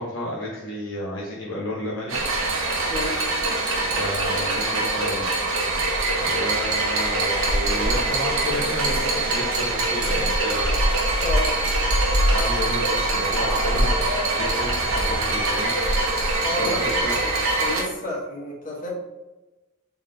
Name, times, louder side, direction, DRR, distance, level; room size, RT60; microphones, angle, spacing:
voice 1, 0.0-2.2 4.0-5.3 6.2-10.9 12.3-16.1 16.6-17.2, equal, 60° left, -5 dB, 0.9 m, -31 dB
sound 1, 2.1-17.8, right 2 dB, 70° right, 1.0 m, -23 dB
voice 2, 2.9-3.2 11.2-11.5 15.0-15.2 16.4-18.9, left 1 dB, 40° left, -5 dB, 1.4 m, -31 dB
3.8 x 3.5 x 3.9 m, 1.1 s
head